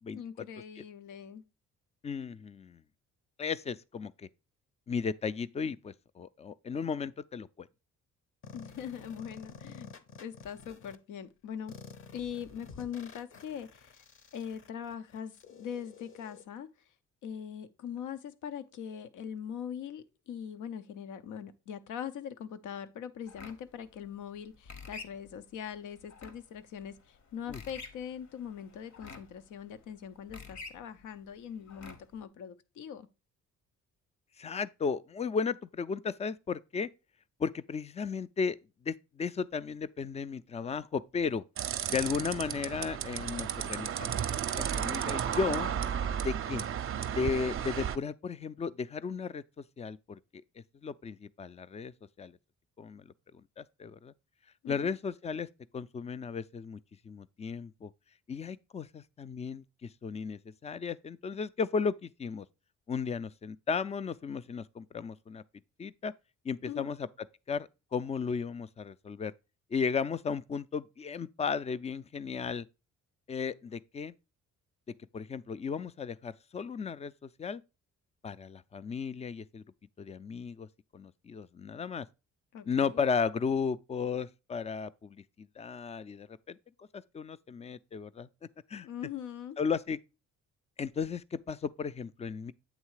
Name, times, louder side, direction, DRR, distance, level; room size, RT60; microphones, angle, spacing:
voice 1, 0.1-1.4 8.5-9.9 10.2-11.7 12.1-14.0 14.3-16.7 17.2-33.1 54.6-54.9 66.7-66.9 82.5-83.1 88.8-89.6, left 8 dB, 80° left, 0.7 m, -42 dB
voice 2, 2.0-2.8 3.4-4.3 4.9-7.7 27.5-27.6 34.4-36.9 37.4-38.6 38.8-41.4 41.9-44.2 44.5-45.7 46.2-46.6 47.1-50.4 50.8-51.9 52.2-52.4 52.8-53.1 53.6-54.1 54.7-55.5 55.7-56.8 57.1-57.9 58.3-62.5 62.9-65.4 65.8-66.1 66.4-67.1 67.5-69.3 69.7-72.7 73.3-74.1 75.1-77.6 78.2-79.6 80.0-80.7 80.9-82.1 82.7-88.3 88.7-88.9 89.6-90.0 90.8-92.5, left 5 dB, 20° left, 0.3 m, -35 dB
sound 1, 8.4-11.0 11.7-16.4, left 5 dB, 45° left, 0.8 m, -50 dB
sound 2, 23.3-32.2, left 4 dB, 65° left, 1.2 m, -50 dB
sound 3, 41.6-48.0, right 8 dB, 45° right, 0.5 m, -33 dB
8.2 x 3.2 x 4.7 m
cardioid pair, 90°, 30 cm